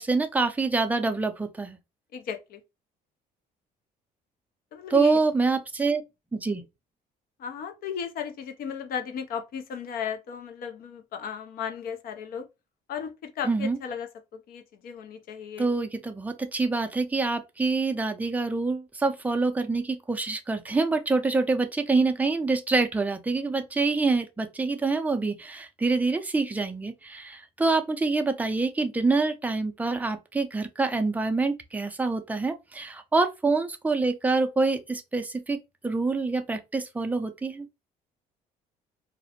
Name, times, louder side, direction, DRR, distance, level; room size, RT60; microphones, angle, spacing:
voice 1, 0.0-1.8 4.9-6.0 6.3-6.6 13.4-13.8 15.6-35.6 35.8-37.7, right 3 dB, 10° right, 0.4 m, -26 dB
voice 2, 2.1-2.6 4.7-5.2 7.4-12.5 12.9-15.7, left 7 dB, 60° left, 0.5 m, -35 dB
2.5 x 2.0 x 2.8 m
cardioid pair, 110°, 17 cm